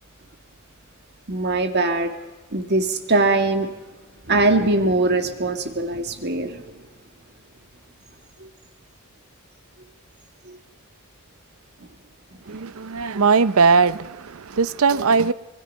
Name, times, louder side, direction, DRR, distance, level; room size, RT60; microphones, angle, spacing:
voice 1, 1.3-2.1 2.5-3.7 4.3-6.8 8.4-8.5 10.5-10.6 12.5-12.6, right 2 dB, 50° right, 1.8 m, -22 dB
voice 2, 12.5-15.3, right 5 dB, 75° right, 0.6 m, -19 dB
26.0 x 21.5 x 5.5 m
head